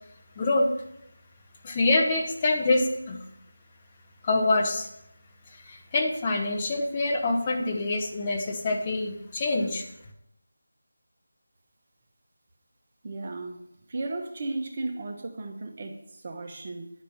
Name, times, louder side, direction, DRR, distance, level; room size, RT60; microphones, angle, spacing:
voice 1, 0.4-0.7 1.6-3.2 4.2-4.9 5.7-9.9, left 2 dB, 20° left, 2 dB, 1.0 m, -25 dB
voice 2, 13.0-13.6 13.9-16.9, right 2 dB, 35° right, 4 dB, 1.0 m, -35 dB
10.0 x 5.1 x 5.8 m, 0.82 s
figure-of-eight pair, 170°, 0 cm